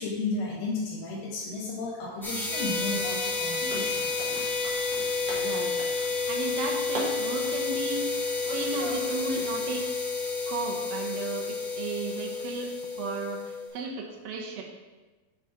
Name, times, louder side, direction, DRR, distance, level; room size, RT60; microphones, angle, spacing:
voice 1, 0.0-4.4, left 3 dB, 85° left, -5 dB, 3.2 m, -33 dB
sound 1, 2.0-9.8, right 1 dB, 45° right, 1.5 m, -42 dB
sound 2, 2.2-13.5, left 1 dB, ahead, 0.9 m, -36 dB
sound 3, 2.5-13.7, left 5 dB, 65° left, 2.3 m, -31 dB
voice 2, 5.3-5.8 6.3-8.0 8.5-9.8 10.5-12.7 13.0-14.6, right 4 dB, 75° right, 0 dB, 2.5 m, -35 dB
9.1 x 3.8 x 4.7 m, 1.2 s
omnidirectional pair, 4.4 m